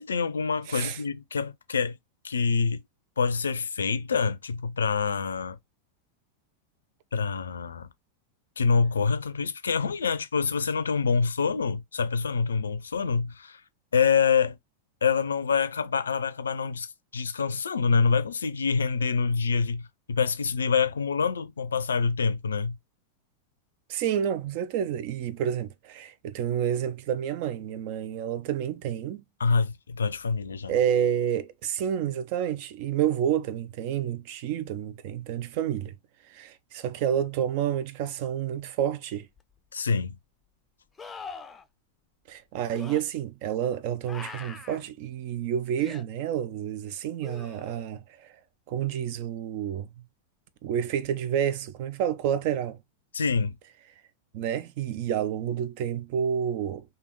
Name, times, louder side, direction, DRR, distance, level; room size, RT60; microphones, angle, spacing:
voice 1, 0.0-1.9 2.2-2.8 3.2-5.6 7.1-7.9 8.6-13.6 13.9-14.6 15.0-19.8 20.1-22.8 29.4-30.7 39.7-40.2 53.1-53.6, left 5 dB, 70° left, 0.4 m, -26 dB
voice 2, 0.7-1.0 23.9-29.2 30.7-36.0 36.3-39.3 42.3-48.3 48.7-49.9 50.6-52.8 54.3-56.8, right 9 dB, 45° right, 0.4 m, -29 dB
sound 1, 39.4-39.5 41.0-41.6 42.7-43.0 44.1-44.8 45.8-46.0 47.2-47.9 51.0-51.1, left 5 dB, 15° left, 0.5 m, -42 dB
3.4 x 2.8 x 3.0 m
figure-of-eight pair, 90°, 0 cm